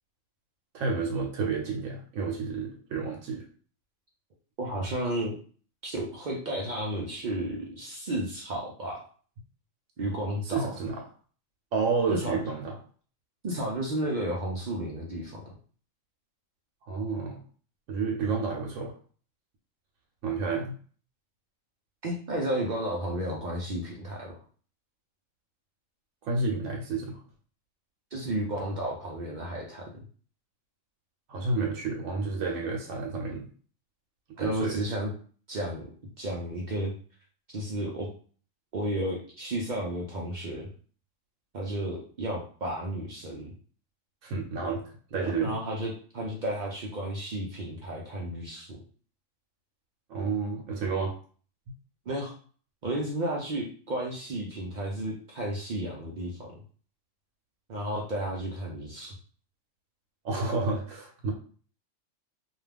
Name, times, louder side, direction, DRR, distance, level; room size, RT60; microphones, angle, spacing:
voice 1, 0.7-3.4 10.4-11.0 11.7-12.8 16.9-17.4 17.9-18.9 20.2-20.8 26.2-27.2 31.3-33.5 34.4-34.8 44.2-44.8 45.1-45.5 50.1-51.1 60.2-61.3, right 4 dB, 85° right, -1 dB, 1.0 m, -30 dB
voice 2, 4.6-5.3 5.8-9.0 10.0-10.7 12.1-12.4 13.4-15.4 22.0-24.4 28.1-29.9 34.4-35.1 35.5-35.9 36.2-36.9 37.5-38.1 38.7-40.7 41.5-43.5 45.1-48.8 52.1-52.3 52.8-56.6 57.7-59.1, right 1 dB, 60° right, -2 dB, 0.5 m, -32 dB
2.4 x 2.3 x 3.3 m, 0.43 s
omnidirectional pair, 1.3 m